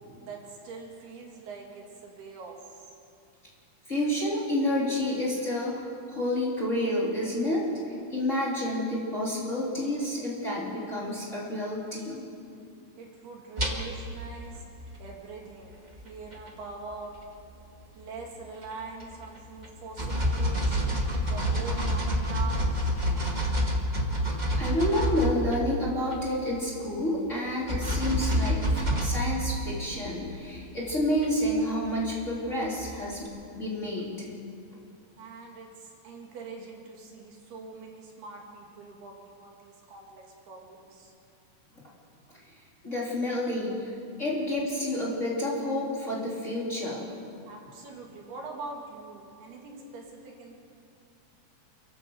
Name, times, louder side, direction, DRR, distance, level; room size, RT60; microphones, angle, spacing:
voice 1, 0.2-2.6 13.0-14.6 15.0-15.7 16.0-17.1 18.0-20.8 21.2-22.9 35.2-41.1 47.5-50.6, right 4 dB, 70° right, 0 dB, 4.3 m, -43 dB
voice 2, 3.9-12.2 24.6-28.6 29.0-33.3 33.5-34.2 42.8-47.1, left 1 dB, 20° left, -5 dB, 3.3 m, -29 dB
sound 1, 13.6-14.3 14.7-14.9 16.0-16.1 16.3-16.5 16.9-17.4 18.2-18.3 18.6-19.4 19.6-19.7 20.0-25.8 26.1-26.2 27.7-30.1 30.6-33.3, equal, 30° right, 0.7 m, -28 dB
28.5 x 12.0 x 7.8 m, 2.4 s
omnidirectional pair, 4.7 m